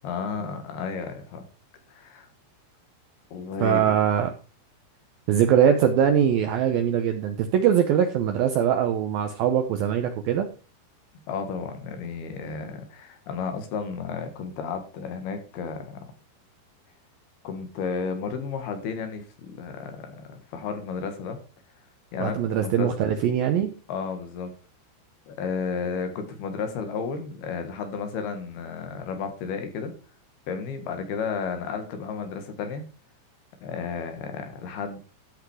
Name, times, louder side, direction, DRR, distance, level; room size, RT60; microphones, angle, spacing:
voice 1, 0.0-1.4 1.9-2.3 3.3-3.9 11.3-16.1 17.4-21.4 22.1-22.9 23.9-24.5 25.3-29.9 30.5-32.8 33.6-35.0, left 5 dB, 65° left, 7 dB, 3.3 m, -32 dB
voice 2, 3.6-4.3 5.3-10.5 22.2-23.7, right 9 dB, 90° right, 7 dB, 2.0 m, -22 dB
13.5 x 6.1 x 4.9 m, 0.36 s
omnidirectional pair, 5.4 m